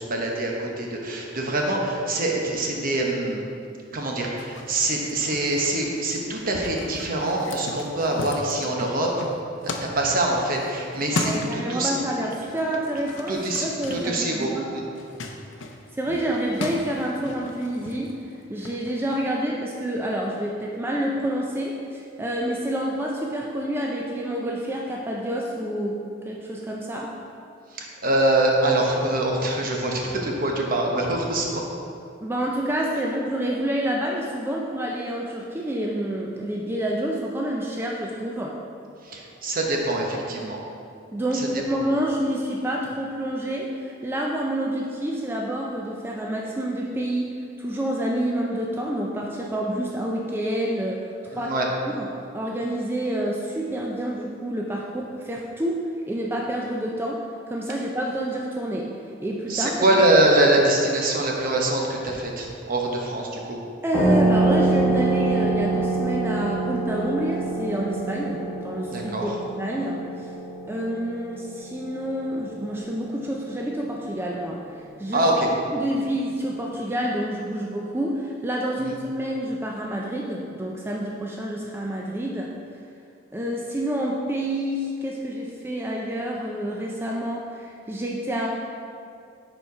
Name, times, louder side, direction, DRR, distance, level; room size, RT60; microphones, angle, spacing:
voice 1, 0.0-3.4 3.9-9.1 9.9-11.9 13.3-14.8 27.7-31.6 39.0-40.6 41.3-41.5 51.3-51.7 59.5-63.6 68.9-69.4 75.1-75.5 78.8-78.9, right 1 dB, 50° right, 0 dB, 0.9 m, -24 dB
sound 1, 4.4-12.1 12.3-19.2, left 3 dB, 80° left, 0.6 m, -37 dB
voice 2, 11.1-14.6 15.9-18.2 18.5-27.1 32.2-38.6 41.1-52.1 52.3-57.2 57.5-58.9 59.2-59.9 63.8-70.3 70.7-75.2 75.7-82.5 83.3-88.5, right 1 dB, 10° right, -2 dB, 0.4 m, -28 dB
sound 2, 63.9-73.1, right 2 dB, 15° left, 1.0 m, -25 dB
6.8 x 4.4 x 4.7 m, 2.5 s
head